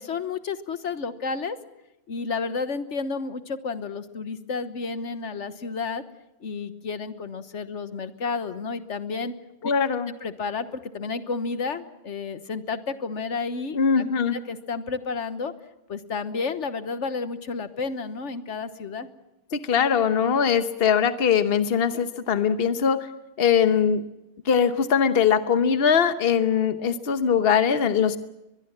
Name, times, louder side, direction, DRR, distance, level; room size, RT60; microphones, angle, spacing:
voice 1, 0.0-1.6 2.1-6.0 6.4-9.3 9.6-9.7 10.2-14.0 14.3-15.5 15.9-19.1, left 4 dB, 80° left, 11 dB, 1.6 m, -31 dB
voice 2, 9.6-10.1 13.7-14.3 19.5-23.1 23.4-24.0 24.4-28.2, left 7 dB, 55° left, 10 dB, 1.2 m, -21 dB
23.0 x 22.0 x 7.4 m, 0.93 s
omnidirectional pair, 1.2 m